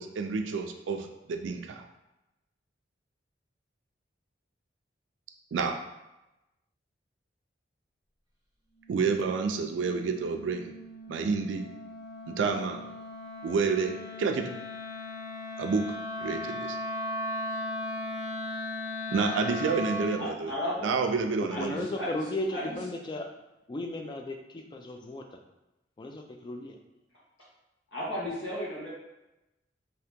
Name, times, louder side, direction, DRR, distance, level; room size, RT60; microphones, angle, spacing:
voice 1, 0.0-1.8 5.5-5.8 8.9-10.7 11.1-11.7 12.3-12.8 13.4-14.5 15.6-15.9 16.2-16.8 19.1-20.5 20.8-21.9, right 5 dB, 80° right, 5 dB, 0.4 m, -29 dB
Wind instrument woodwind instrument, 8.7-20.2, left 1 dB, 20° right, 0.8 m, -38 dB
voice 2, 20.2-20.9 21.5-22.2 22.5-22.8 27.9-28.9, left 1 dB, 75° left, -6 dB, 1.2 m, -34 dB
voice 3, 21.6-23.3 23.7-25.2 26.0-26.7, left 2 dB, 25° left, 3 dB, 0.3 m, -35 dB
2.8 x 2.8 x 3.5 m, 0.96 s
head